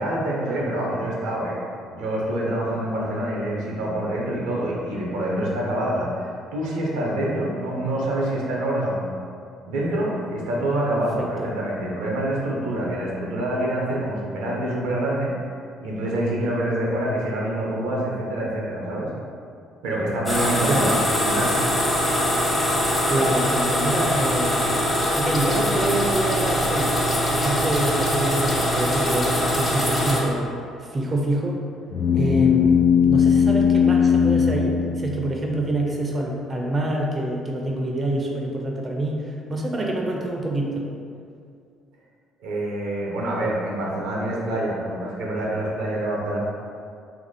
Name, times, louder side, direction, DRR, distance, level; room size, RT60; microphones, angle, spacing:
voice 1, 0.0-1.6 1.9-9.0 9.6-15.3 15.8-19.1 19.8-20.9 21.2-21.5 42.4-46.4, right 1 dB, 80° right, -3 dB, 0.5 m, -26 dB
sound 1, 20.3-30.2, equal, 25° left, 0.7 m, -22 dB
voice 2, 23.1-24.7 25.2-27.0 27.3-30.5 30.8-31.6 32.1-40.8, right 1 dB, 35° right, 0 dB, 0.4 m, -26 dB
sound 2, 31.9-35.6, left 7 dB, 55° left, 0.3 m, -19 dB
2.9 x 2.5 x 2.6 m, 2.3 s
hypercardioid pair, 60°, 0 cm